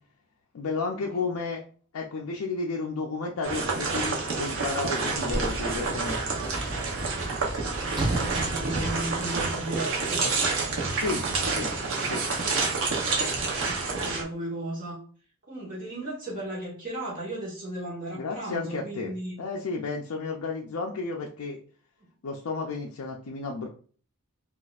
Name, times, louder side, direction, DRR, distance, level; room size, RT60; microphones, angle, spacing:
voice 1, 0.5-1.6 1.9-6.2 10.9-11.2 11.5-11.7 12.0-12.2 18.1-19.1 19.4-21.6 22.2-23.7, left 4 dB, 70° left, -1 dB, 0.4 m, -32 dB
sound 1, 3.4-14.2, right 4 dB, 60° right, 0.8 m, -28 dB
Sliding door / Slam, 4.5-9.9 10.8-10.9, right 1 dB, 20° right, 0.5 m, -35 dB
voice 2, 7.7-10.4 13.5-15.0 15.5-19.4, right 1 dB, 40° right, -5 dB, 1.2 m, -36 dB
4.1 x 2.4 x 2.4 m, 0.43 s
head